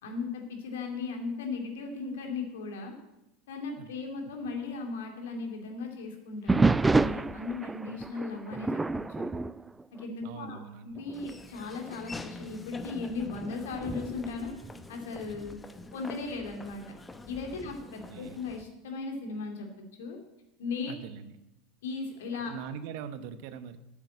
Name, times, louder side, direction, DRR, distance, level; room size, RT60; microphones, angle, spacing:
voice 1, 0.0-3.0 3.5-9.3 9.9-14.5 14.9-15.6 15.9-16.8 17.3-19.7 20.0-20.2 20.6-20.9 21.8-22.5, left 4 dB, 70° left, 3 dB, 2.4 m, -37 dB
sound 1, 6.5-10.6 10.9-11.3 11.9-12.0 12.8-15.5 17.3-17.8, right 3 dB, 15° right, 0.4 m, -30 dB
voice 2, 10.2-11.0 17.6-17.7 18.1-18.4 20.9-21.4 22.3-23.8, right 8 dB, 60° right, 11 dB, 1.0 m, -42 dB
Laughter / Walk footsteps, 11.1-18.6, left 2 dB, 15° left, 0.8 m, -46 dB
9.0 x 7.2 x 8.5 m, 0.94 s
hypercardioid pair, 85°, 0 cm